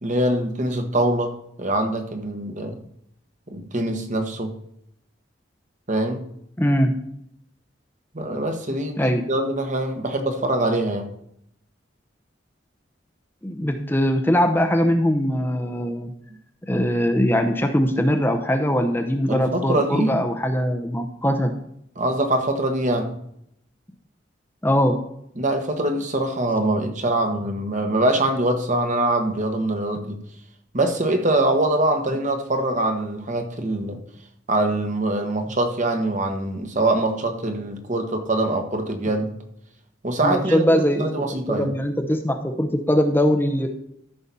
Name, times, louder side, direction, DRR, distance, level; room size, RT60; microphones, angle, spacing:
voice 1, 0.0-2.8 3.5-4.5 5.9-6.3 8.1-11.1 19.3-20.2 22.0-23.2 25.4-30.2 30.7-34.0 34.5-39.3 40.0-41.8, right 1 dB, 40° right, 4 dB, 1.3 m, -23 dB
voice 2, 6.6-7.0 9.0-9.2 13.4-16.1 16.7-21.5 24.6-25.0 40.2-43.7, equal, 10° left, 5 dB, 0.7 m, -21 dB
13.5 x 5.9 x 4.1 m, 0.74 s
head